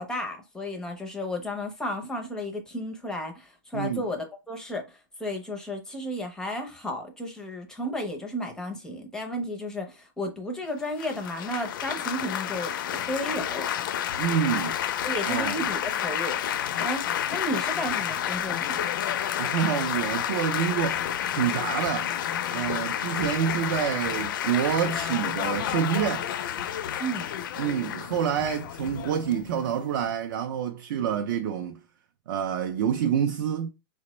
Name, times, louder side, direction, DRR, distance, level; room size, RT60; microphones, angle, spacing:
voice 1, 0.0-13.7 15.0-16.4 16.8-18.9 27.0-27.3, equal, 5° left, 0.5 m, -33 dB
Laughter / Applause / Chatter, 11.0-30.1, left 10 dB, 60° left, 0.4 m, -30 dB
voice 2, 14.2-14.8 15.3-15.7 19.4-21.0 21.3-22.1 22.5-26.3 27.6-31.8 32.3-33.7, right 8 dB, 60° right, 0.4 m, -27 dB
4.1 x 2.1 x 2.9 m
supercardioid pair, 165°, 12 cm